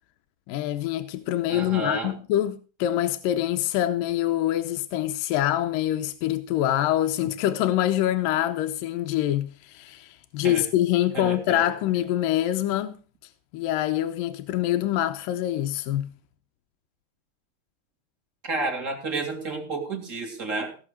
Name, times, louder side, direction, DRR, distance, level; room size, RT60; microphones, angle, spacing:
voice 1, 0.5-12.9 13.5-16.1, left 13 dB, 85° left, 2.5 m, -25 dB
voice 2, 1.5-2.1 10.4-10.6 11.1-11.6 18.4-20.8, right 3 dB, 25° right, 2.4 m, -31 dB
17.0 x 6.5 x 6.2 m
omnidirectional pair, 3.9 m